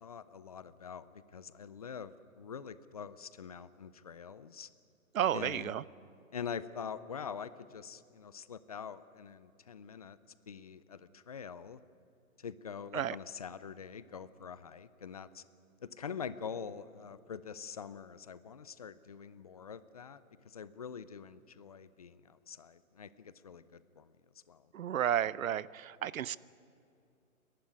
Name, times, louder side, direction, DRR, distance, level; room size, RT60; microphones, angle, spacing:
voice 1, 0.0-4.7 5.3-5.7 6.3-10.2 10.5-11.8 12.4-15.4 15.8-24.1 24.5-24.7, left 6 dB, 30° left, 15 dB, 0.4 m, -45 dB
voice 2, 5.1-5.8 12.9-13.2 24.7-26.4, right 10 dB, 70° right, 20 dB, 0.7 m, -32 dB
29.5 x 11.5 x 9.6 m, 2.5 s
hypercardioid pair, 145°, 43 cm